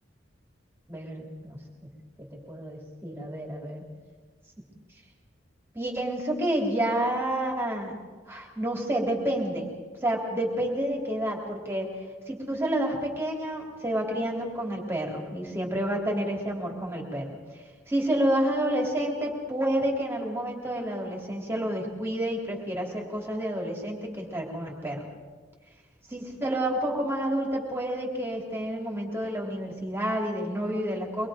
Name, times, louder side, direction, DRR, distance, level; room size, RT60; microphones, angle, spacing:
voice 1, 0.9-1.9 2.2-3.8 5.7-9.7 10.0-12.0 12.3-25.1 26.1-31.3, right 1 dB, 15° right, -1 dB, 3.3 m, -29 dB
24.0 x 21.5 x 5.1 m, 1.4 s
head